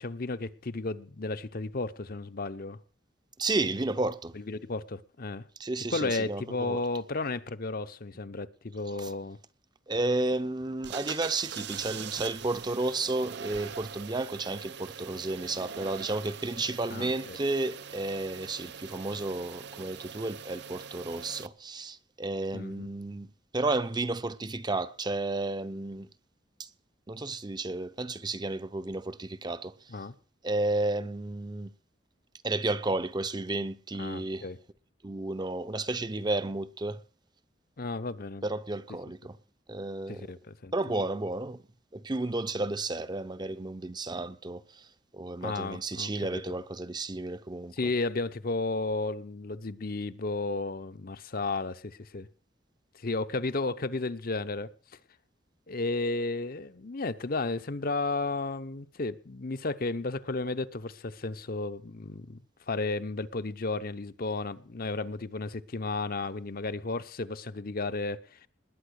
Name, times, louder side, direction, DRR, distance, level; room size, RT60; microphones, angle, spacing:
voice 1, 0.0-2.8 4.3-5.5 5.9-9.4 16.9-17.4 22.5-22.9 29.9-30.1 34.0-34.6 37.8-38.4 40.1-40.7 45.4-46.6 47.7-52.3 52.9-54.7 55.7-62.4 62.7-68.5, left 3 dB, 50° left, 0.8 m, -33 dB
voice 2, 3.4-4.3 5.6-6.8 9.0-9.1 9.9-23.3 23.5-26.1 26.6-26.7 27.1-29.7 30.4-31.7 32.4-34.4 35.0-37.0 38.4-39.4 39.7-40.3 40.7-41.6 41.9-44.9 45.1-47.8, right 2 dB, 25° right, 0.7 m, -32 dB
sound 1, 10.8-21.5, right 7 dB, 65° right, 0.6 m, -42 dB
20.0 x 9.2 x 6.5 m
head